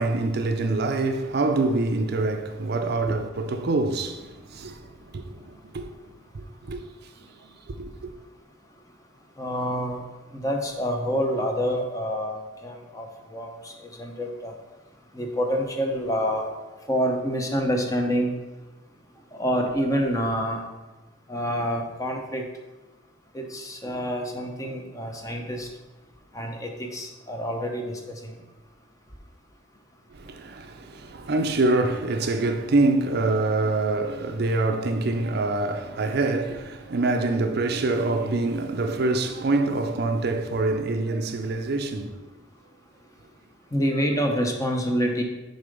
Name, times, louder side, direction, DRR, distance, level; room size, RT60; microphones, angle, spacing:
voice 1, 0.0-5.9 6.3-8.1 30.1-42.3, right 2 dB, 55° right, 0.5 m, -25 dB
voice 2, 9.4-10.0 10.3-14.5 15.1-16.5 16.9-18.3 19.3-20.6 21.3-22.4 23.3-25.7 26.3-28.3 43.7-45.2, equal, 15° left, 0.8 m, -27 dB
6.9 x 3.9 x 5.2 m
head